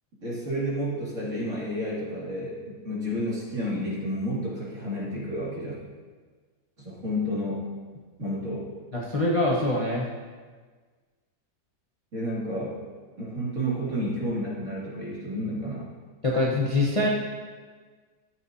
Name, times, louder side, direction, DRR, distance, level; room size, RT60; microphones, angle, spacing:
voice 1, 0.2-5.7 6.8-7.7 8.2-8.7 12.1-12.8 13.2-15.9, equal, 50° right, -7 dB, 2.7 m, -31 dB
voice 2, 8.9-10.1 16.2-17.1, left 2 dB, 25° left, -4 dB, 0.8 m, -24 dB
13.5 x 7.8 x 2.7 m, 1.5 s
omnidirectional pair, 1.7 m